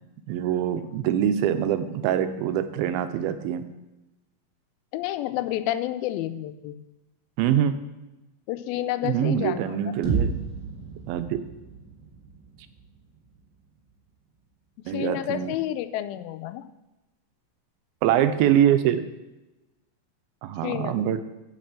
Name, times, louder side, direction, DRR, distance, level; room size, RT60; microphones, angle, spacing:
voice 1, 0.3-3.6 7.4-7.7 9.0-10.4 11.1-11.4 14.9-15.5 18.0-19.1 20.4-21.2, right 10 dB, 85° right, 10 dB, 2.5 m, -24 dB
voice 2, 4.9-6.8 8.5-9.9 14.9-16.6 20.6-21.0, left 13 dB, 85° left, 11 dB, 2.4 m, -30 dB
sound 1, 10.0-14.0, right 5 dB, 30° right, 1.7 m, -32 dB
8.7 x 5.8 x 7.6 m, 1.0 s
omnidirectional pair, 4.2 m